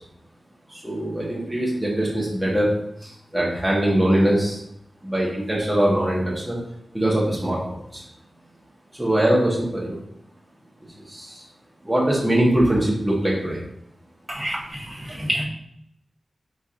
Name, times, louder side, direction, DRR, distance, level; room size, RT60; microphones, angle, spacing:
voice 1, 0.7-4.6 5.0-6.6 6.9-8.0 9.0-10.0 11.1-11.4 11.8-13.6, right 1 dB, 15° right, -5 dB, 1.3 m, -22 dB
voice 2, 14.3-15.4, equal, 30° right, -5 dB, 1.5 m, -28 dB
4.5 x 4.2 x 2.6 m, 0.74 s
cardioid pair, 50°, 0 cm